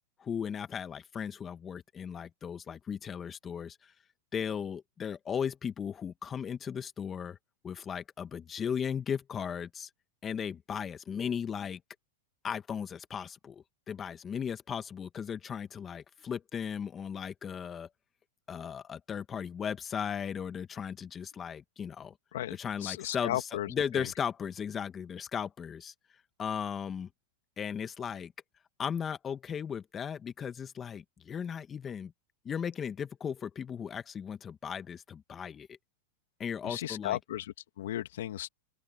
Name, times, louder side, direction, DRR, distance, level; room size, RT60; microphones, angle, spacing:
voice 1, 0.2-3.9 4.3-7.4 7.6-9.9 10.2-11.8 12.4-17.9 18.5-22.1 22.5-27.1 27.6-28.3 28.8-32.1 32.4-35.8 36.4-37.2, left 7 dB, 20° left, 1.5 m, -36 dB
voice 2, 22.3-23.7 23.9-24.1 36.6-38.5, left 13 dB, 75° left, 2.2 m, -35 dB
open air
hypercardioid pair, 125°, 0 cm